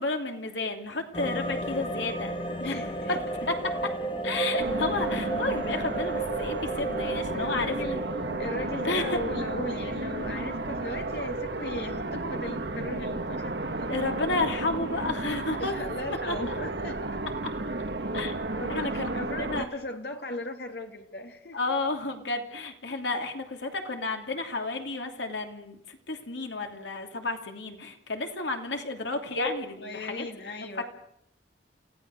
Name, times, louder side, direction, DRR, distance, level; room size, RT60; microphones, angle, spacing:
voice 1, 0.0-2.3 2.6-2.7 3.1-3.2 3.5-3.7 4.2-8.0 8.8-9.2 13.9-15.7 16.1-16.5 17.4-17.5 18.1-18.4 18.7-19.1 19.4-19.7 21.5-30.3 30.6-30.7, left 3 dB, 80° left, 5 dB, 2.9 m, -31 dB
sound 1, 1.1-13.3 13.7-13.8, right 2 dB, 30° left, 1.5 m, -34 dB
voice 2, 2.6-3.2 7.3-8.0 8.4-13.9 15.6-17.0 18.0-18.1 18.5-21.6 29.8-30.8, left 2 dB, 65° left, 4 dB, 3.0 m, -37 dB
sound 2, 4.6-19.7, right 2 dB, 65° right, 1.4 m, -33 dB
29.0 x 16.5 x 6.5 m, 0.76 s
head